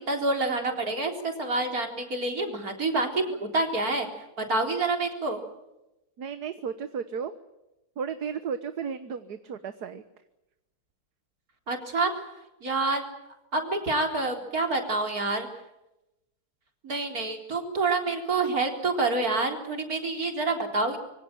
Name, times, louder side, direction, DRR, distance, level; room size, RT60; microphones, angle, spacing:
voice 1, 0.1-4.1 4.5-5.4 11.7-12.1 12.6-13.0 13.5-15.5 16.8-21.0, right 3 dB, 65° right, 3 dB, 4.4 m, -27 dB
voice 2, 6.2-7.3 8.0-10.0, right 6 dB, 85° right, 10 dB, 1.8 m, -34 dB
26.0 x 24.5 x 7.6 m, 0.95 s
omnidirectional pair, 1.7 m